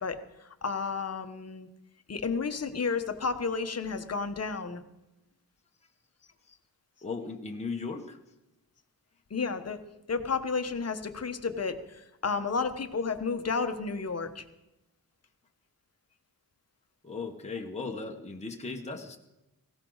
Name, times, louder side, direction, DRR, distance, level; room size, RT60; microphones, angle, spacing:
voice 1, 0.0-1.7 2.1-4.8 9.3-9.8 10.1-14.4, left 4 dB, 40° left, 8 dB, 1.2 m, -32 dB
voice 2, 7.0-8.2 17.0-19.2, left 4 dB, 15° left, 1 dB, 1.3 m, -37 dB
18.5 x 16.5 x 4.0 m, 0.94 s
wide cardioid pair, 110°, 38 cm